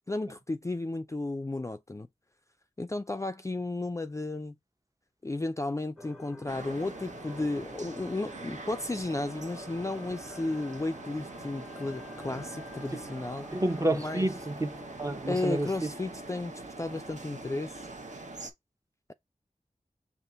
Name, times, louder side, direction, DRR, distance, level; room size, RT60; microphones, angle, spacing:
voice 1, 0.1-2.1 2.8-4.5 5.2-13.5 13.9-14.3 15.2-17.9, left 2 dB, 25° left, 0.3 m, -33 dB
sound 1, 6.0-15.7, left 1 dB, ahead, 1.2 m, -50 dB
sound 2, 6.5-18.5, right 2 dB, 65° right, 0.8 m, -44 dB
voice 2, 13.5-15.9, right 1 dB, 25° right, 0.7 m, -30 dB
5.3 x 2.5 x 3.8 m
wide cardioid pair, 60°, 13 cm